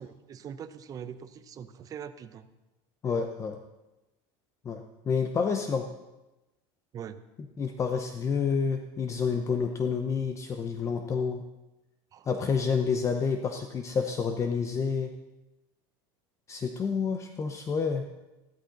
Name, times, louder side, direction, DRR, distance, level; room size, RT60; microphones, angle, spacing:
voice 1, 0.0-2.5 6.9-7.2 12.1-12.3, right 8 dB, 30° right, 12 dB, 0.7 m, -42 dB
voice 2, 3.0-3.6 4.6-5.9 7.6-11.4 12.3-15.1 16.5-18.1, left 5 dB, 25° left, 6 dB, 0.8 m, -29 dB
14.5 x 12.5 x 3.9 m, 1.0 s
supercardioid pair, 140°, 12 cm